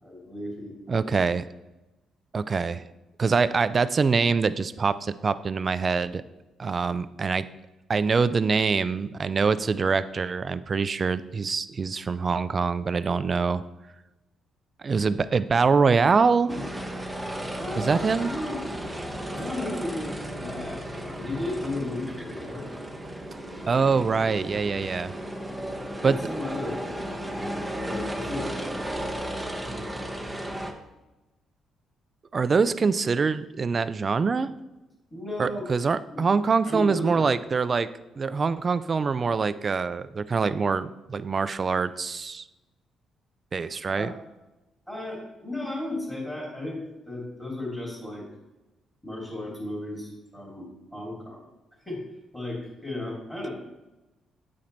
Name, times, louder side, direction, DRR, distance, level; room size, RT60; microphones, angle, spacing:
voice 1, 0.0-0.7 1.0-1.2 16.4-16.7 17.6-18.6 19.3-20.1 20.4-22.7 23.8-24.5 25.9-27.3 27.8-29.3 35.1-35.6 36.1-36.2 36.6-37.3 43.9-44.1 44.9-48.2 49.0-51.4 51.9-52.0 52.3-53.5, left 1 dB, 10° left, -4 dB, 2.6 m, -35 dB
voice 2, 0.9-1.5 2.3-2.9 3.2-6.2 6.6-7.5 7.9-13.6 14.8-16.5 17.7-18.3 23.7-25.1 26.0-26.2 28.6-28.7 29.7-29.9 32.3-34.5 35.4-37.9 38.2-42.5 43.5-44.1, right 5 dB, 40° right, 15 dB, 0.3 m, -24 dB
sound 1, 15.9-29.5, left 1 dB, 65° right, 1.2 m, -47 dB
sound 2, 16.5-30.7, right 1 dB, 5° right, 0.9 m, -35 dB
8.6 x 4.3 x 3.9 m, 1.0 s
cardioid pair, 90°, 0 cm